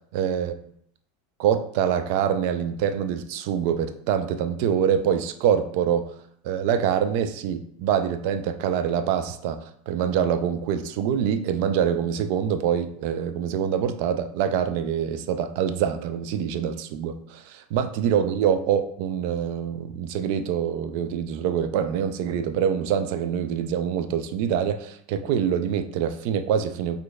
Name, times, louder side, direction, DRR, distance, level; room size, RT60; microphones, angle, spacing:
voice 1, 0.1-0.5 1.4-6.1 6.4-9.6 9.9-27.0, right 8 dB, 60° right, 8 dB, 0.4 m, -25 dB
4.4 x 2.5 x 2.2 m, 0.67 s
hypercardioid pair, 95°, 0 cm